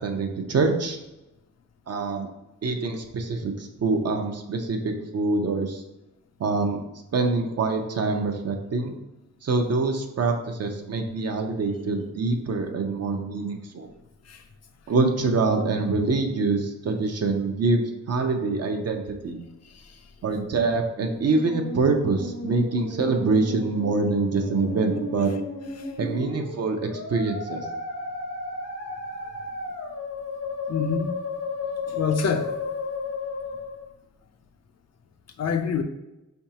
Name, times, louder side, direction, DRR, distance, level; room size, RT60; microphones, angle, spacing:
voice 1, 0.0-1.0 1.9-2.3 2.6-5.8 6.4-6.8 7.1-9.0 9.4-13.9 14.9-19.4 20.2-25.3 26.0-27.7, right 3 dB, 55° right, 0.6 m, -25 dB
Musical instrument, 20.9-33.9, left 2 dB, 80° left, 0.9 m, -34 dB
voice 2, 30.7-31.2 31.9-32.5 35.4-35.8, left 6 dB, 55° left, 0.5 m, -26 dB
4.7 x 3.4 x 2.8 m
wide cardioid pair, 150°, 31 cm